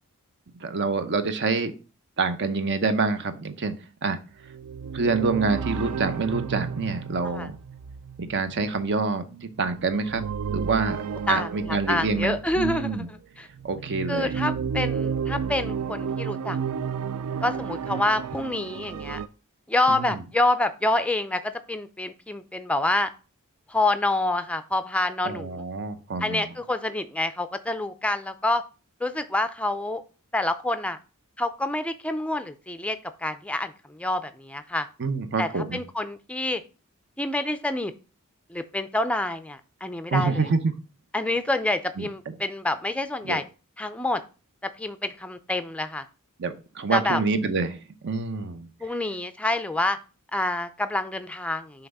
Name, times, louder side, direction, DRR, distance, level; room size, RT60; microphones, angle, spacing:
voice 1, 0.6-1.7 2.2-3.7 4.0-4.2 4.9-7.6 8.2-9.2 9.6-10.2 10.5-11.0 11.3-13.1 13.6-14.3 19.9-20.2 25.2-26.5 35.0-35.8 40.1-40.7 42.0-42.3 43.2-43.4 46.4-47.8 48.0-48.7, right 4 dB, 55° right, 10 dB, 0.7 m, -26 dB
sound 1, 4.4-12.9 13.6-19.3, right 6 dB, 85° right, 0.4 m, -32 dB
voice 2, 11.3-13.5 14.1-16.6 17.4-19.2 19.7-23.1 23.7-25.6 26.2-28.6 29.0-30.0 30.3-31.0 31.4-34.9 35.4-36.6 37.2-37.9 38.5-40.5 41.1-43.4 43.8-44.2 44.6-46.0 46.9-47.2 48.8-50.0 50.3-51.9, left 2 dB, 5° left, 10 dB, 0.4 m, -27 dB
5.8 x 3.4 x 5.3 m, 0.34 s
head